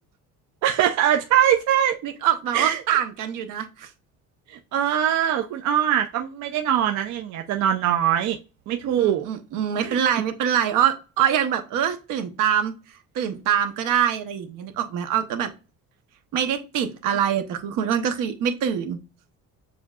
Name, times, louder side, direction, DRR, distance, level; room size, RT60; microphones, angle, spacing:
voice 1, 0.6-2.0 2.5-2.8 4.5-8.4 8.7-9.3 9.8-10.0, right 10 dB, 60° right, 0.5 m, -22 dB
voice 2, 2.0-3.9 9.0-12.7 13.1-15.5 16.3-19.0, right 9 dB, 75° right, 1.0 m, -24 dB
6.9 x 2.7 x 2.4 m
cardioid pair, 145°, 33 cm